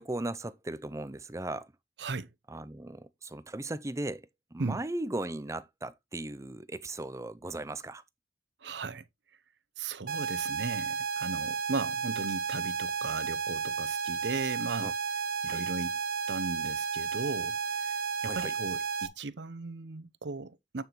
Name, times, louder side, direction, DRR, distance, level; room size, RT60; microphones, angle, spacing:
voice 1, 0.0-1.7 2.5-8.0 14.8-14.9 15.5-15.6 18.2-18.5, right 2 dB, 15° right, 0.5 m, -37 dB
voice 2, 8.6-9.0 9.8-14.9 15.4-16.0 16.3-17.6 17.8-17.9 18.2-20.8, right 3 dB, 85° right, 0.8 m, -37 dB
sound 1, 10.1-19.1, right 5 dB, 55° right, 0.9 m, -33 dB
9.5 x 5.8 x 3.1 m
head